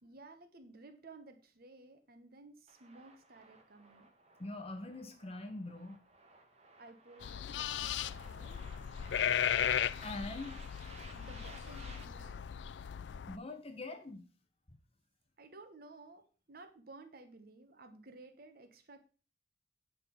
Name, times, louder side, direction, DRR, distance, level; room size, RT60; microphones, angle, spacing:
voice 1, 0.0-4.1 6.8-8.8 11.1-12.4 15.4-19.0, right 3 dB, 55° right, 8 dB, 1.2 m, -55 dB
sound 1, 2.7-12.0, right 3 dB, 35° right, 1.8 m, -58 dB
voice 2, 4.4-6.0 10.0-10.6 13.3-14.3, left 2 dB, 35° left, 6 dB, 1.2 m, -43 dB
sound 2, 7.2-13.4, left 9 dB, 75° left, 0.4 m, -36 dB
8.7 x 5.8 x 7.0 m, 0.38 s
head